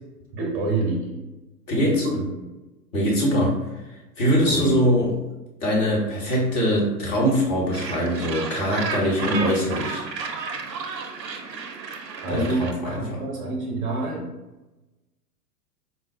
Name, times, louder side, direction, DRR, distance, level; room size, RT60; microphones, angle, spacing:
voice 1, 0.3-1.2 1.7-2.3 4.4-4.8 12.2-14.3, right 2 dB, 25° right, 0 dB, 0.8 m, -27 dB
voice 2, 1.7-2.1 2.9-3.8 4.2-5.1 5.6-10.0 12.3-13.2, equal, 25° left, -3 dB, 0.9 m, -22 dB
Gull seagull, 7.7-12.7, right 5 dB, 85° right, 0.6 m, -32 dB
4.3 x 2.0 x 2.6 m, 1.1 s
figure-of-eight pair, 105°, 49 cm